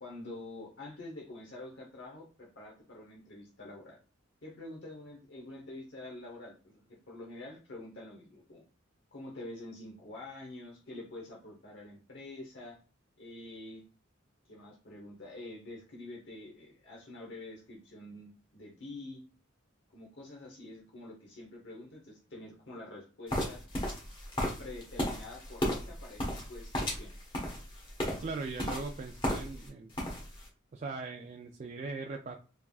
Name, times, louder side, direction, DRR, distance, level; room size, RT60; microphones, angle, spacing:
voice 1, 0.0-4.0 4.4-6.8 7.1-8.6 9.1-12.8 13.2-13.8 14.5-19.2 19.9-23.6 24.6-27.1, left 2 dB, 60° left, -2 dB, 1.0 m, -47 dB
sound 1, 23.3-29.7 29.9-30.4, left 1 dB, 25° left, 1.2 m, -35 dB
voice 2, 28.2-29.9 30.7-32.4, right 3 dB, 35° right, 2 dB, 0.3 m, -39 dB
3.5 x 3.4 x 2.3 m, 0.36 s
head